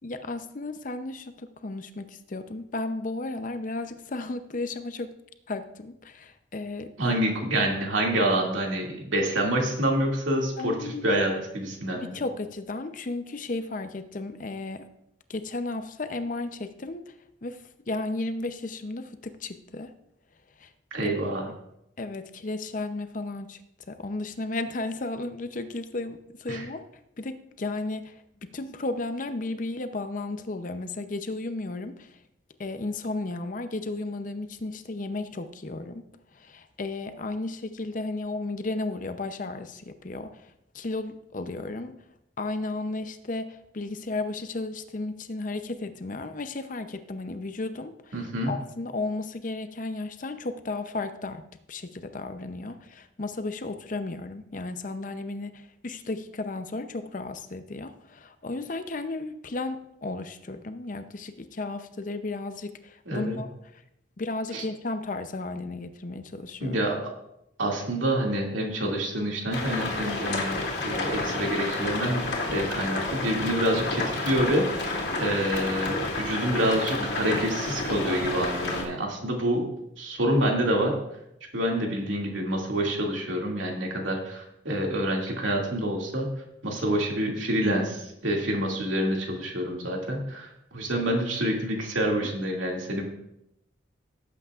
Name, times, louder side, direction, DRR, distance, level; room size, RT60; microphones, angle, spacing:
voice 1, 0.0-5.1 5.5-7.2 10.6-11.2 11.9-14.9 15.3-17.0 17.4-19.9 20.6-20.7 21.0-21.2 22.0-23.6 23.9-26.8 27.2-32.1 32.6-36.1 36.3-42.0 42.4-63.5 64.2-66.8, left 2 dB, 40° left, 9 dB, 0.6 m, -34 dB
voice 2, 7.0-12.1 20.9-21.5 26.5-26.6 48.1-48.5 63.1-63.4 64.5-64.6 66.6-67.0 67.6-72.2 72.5-74.7 75.2-79.7 80.0-80.9 81.5-86.3 86.6-93.0, right 1 dB, 85° right, -1 dB, 2.3 m, -27 dB
sound 1, 69.5-78.8, left 2 dB, 60° left, 2.3 m, -30 dB
17.5 x 8.4 x 2.4 m, 0.81 s
head